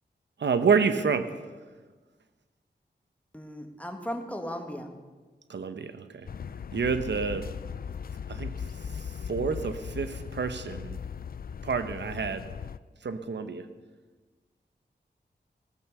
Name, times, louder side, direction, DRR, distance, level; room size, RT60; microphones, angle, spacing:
voice 1, 0.4-1.3 5.5-6.3 6.7-7.5 8.3-8.5 8.9-11.0 11.6-12.4 13.0-13.7, right 5 dB, 90° right, 9 dB, 1.0 m, -28 dB
voice 2, 3.3-4.9, equal, 10° left, 4 dB, 1.8 m, -36 dB
sound 1, 6.2-12.8, left 7 dB, 55° left, 0.4 m, -38 dB
17.5 x 9.1 x 6.7 m, 1.3 s
wide cardioid pair, 105°, 18 cm